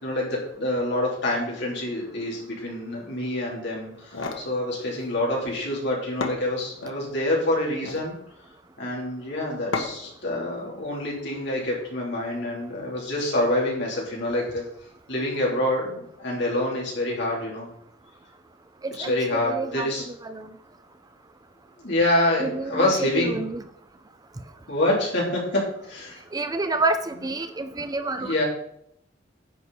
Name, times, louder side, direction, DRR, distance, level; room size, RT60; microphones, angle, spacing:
voice 1, 0.0-8.1 8.8-14.6 15.1-17.7 18.9-20.0 21.8-23.4 24.7-26.2 28.2-28.4, left 1 dB, 60° left, -3 dB, 3.8 m, -26 dB
sound 1, 3.9-4.5 5.8-5.9 6.2-7.0 7.7-8.1 9.7-10.2, left 3 dB, 90° left, 1.3 m, -32 dB
voice 2, 19.0-20.5 22.4-23.6 26.3-28.4, right 2 dB, 20° right, 9 dB, 0.5 m, -29 dB
10.0 x 6.5 x 4.3 m, 0.71 s
head